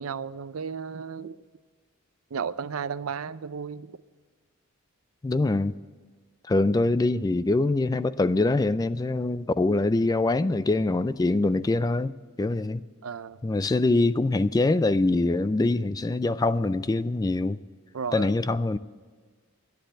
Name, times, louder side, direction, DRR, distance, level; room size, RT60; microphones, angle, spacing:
voice 1, 0.0-1.4 2.3-3.9 13.0-13.4 17.9-18.3, right 6 dB, 80° right, 0.5 m, -34 dB
voice 2, 5.2-5.7 6.5-12.8 13.4-17.6 18.1-18.8, left 2 dB, 20° left, 0.3 m, -24 dB
12.0 x 10.5 x 8.8 m
head